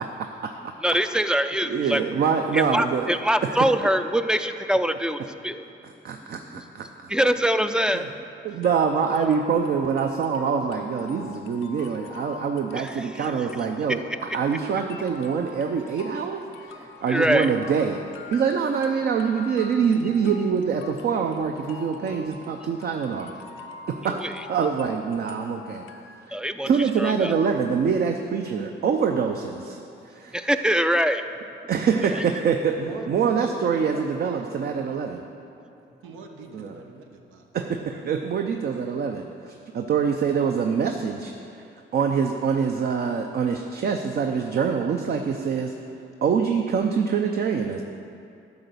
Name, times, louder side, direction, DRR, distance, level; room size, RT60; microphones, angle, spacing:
voice 1, 0.0-0.7 1.6-3.1 3.5-3.6 6.0-7.1 7.9-8.1 8.4-14.0 14.3-18.0 18.3-23.3 23.9-24.2 24.5-25.8 26.3-26.4 26.6-30.5 31.7-32.7 33.1-35.2 36.5-36.7 37.5-41.7 41.9-45.7 46.2-47.8, right 6 dB, 55° right, 4 dB, 0.6 m, -25 dB
voice 2, 0.8-2.0 2.5-5.6 7.1-8.1 9.2-9.4 12.8-13.3 17.1-17.5 20.3-20.4 24.0-24.3 26.3-26.7 27.0-27.3 30.3-31.2, equal, 5° right, 9 dB, 0.4 m, -24 dB
sound 1, 8.6-26.5, left 5 dB, 85° left, 0.6 m, -44 dB
voice 3, 32.8-34.5 36.0-37.5, right 4 dB, 85° right, 3 dB, 1.0 m, -40 dB
12.0 x 4.0 x 6.8 m, 2.6 s
cardioid pair, 90°, 20 cm